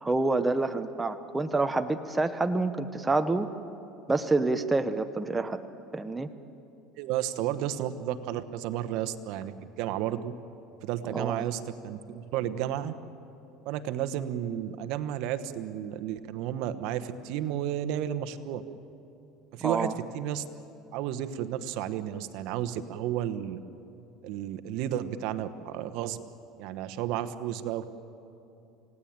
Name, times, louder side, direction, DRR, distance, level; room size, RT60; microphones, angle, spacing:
voice 1, 0.0-3.5 4.1-5.6 5.9-6.3 11.1-11.5 19.6-19.9, right 2 dB, 10° right, 8 dB, 1.0 m, -27 dB
voice 2, 7.0-10.3 10.8-12.9 13.6-18.6 19.5-20.4 20.9-23.6 24.2-26.2 26.6-27.9, right 11 dB, 65° right, 11 dB, 1.2 m, -32 dB
28.5 x 18.0 x 8.9 m, 2.7 s
cardioid pair, 135°, 0 cm